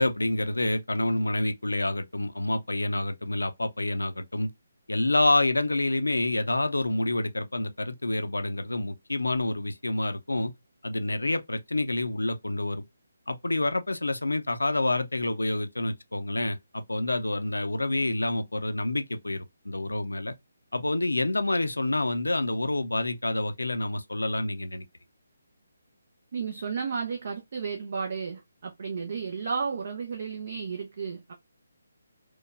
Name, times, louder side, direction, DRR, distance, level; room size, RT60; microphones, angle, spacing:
voice 1, 0.0-4.5 4.9-10.5 10.8-12.8 13.3-20.3 20.7-24.8, left 2 dB, 85° left, 0.6 m, -28 dB
voice 2, 26.3-31.3, right 5 dB, 50° right, 0.7 m, -33 dB
4.5 x 2.3 x 2.4 m
figure-of-eight pair, 150°, 0 cm